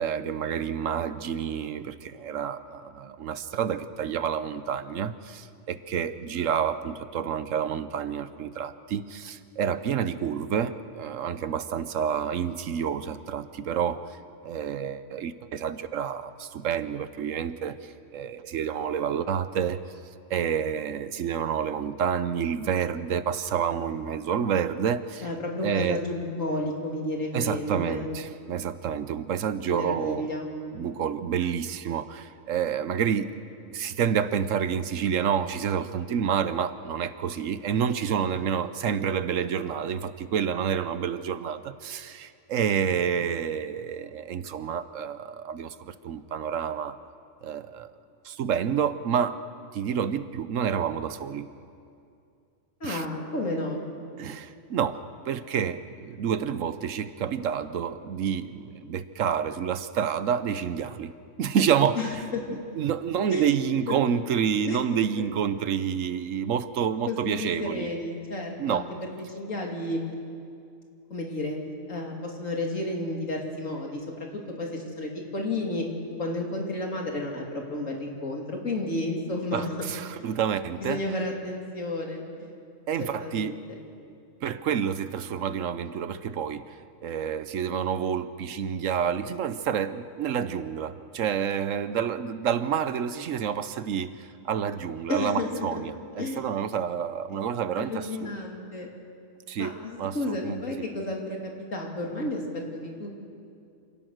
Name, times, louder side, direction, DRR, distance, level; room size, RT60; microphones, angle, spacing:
voice 1, 0.0-14.0 14.4-19.8 20.3-25.3 25.6-26.0 27.3-30.3 30.7-33.3 33.7-47.0 47.4-47.9 48.2-49.4 49.7-51.5 52.8-53.0 54.2-55.0 55.3-61.1 61.4-62.2 62.5-67.9 68.6-68.9 79.5-81.0 82.9-83.5 84.4-98.3 99.5-100.6, right 8 dB, 75° right, 13 dB, 1.1 m, -29 dB
voice 2, 25.2-28.1 29.7-30.5 52.8-53.8 62.0-62.6 63.3-63.5 64.7-64.8 67.1-68.9 69.3-70.0 71.1-71.6 71.9-75.8 76.2-79.9 80.8-82.5 83.0-83.6 95.1-95.8 96.2-96.4 97.8-98.9 99.6-103.1, left 2 dB, 75° left, 0 dB, 3.2 m, -32 dB
27.5 x 17.0 x 6.5 m, 2.5 s
omnidirectional pair, 1.4 m